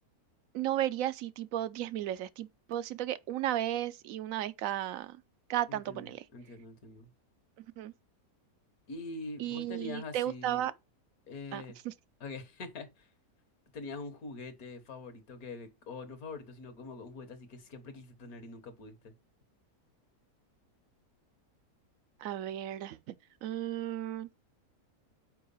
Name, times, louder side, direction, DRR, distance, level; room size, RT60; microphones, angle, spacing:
voice 1, 0.5-5.2 5.5-6.3 7.8-7.9 9.4-10.7 11.5-11.9 22.2-23.1 23.4-24.3, right 12 dB, 70° right, 0.9 m, -34 dB
voice 2, 5.7-7.1 8.9-10.7 11.3-11.8 12.2-13.1 13.7-19.1, left 3 dB, 70° left, 1.6 m, -44 dB
5.7 x 4.7 x 5.4 m
omnidirectional pair, 1.6 m